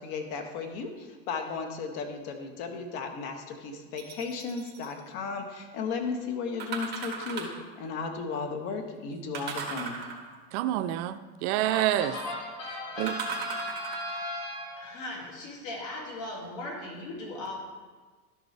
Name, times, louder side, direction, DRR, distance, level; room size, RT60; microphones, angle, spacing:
voice 1, 0.0-10.0, left 4 dB, 55° left, 5 dB, 1.3 m, -35 dB
sound 1, 4.0-4.9 6.6-7.7 9.3-10.5 13.1-14.2 14.9-15.0, right 5 dB, 25° right, 1.6 m, -37 dB
voice 2, 10.5-12.2 13.0-13.1, right 13 dB, 55° right, 11 dB, 0.5 m, -27 dB
voice 3, 11.6-17.6, left 1 dB, 70° left, 0 dB, 2.5 m, -37 dB
11.5 x 6.6 x 3.3 m, 1.4 s
supercardioid pair, 125°, 40 cm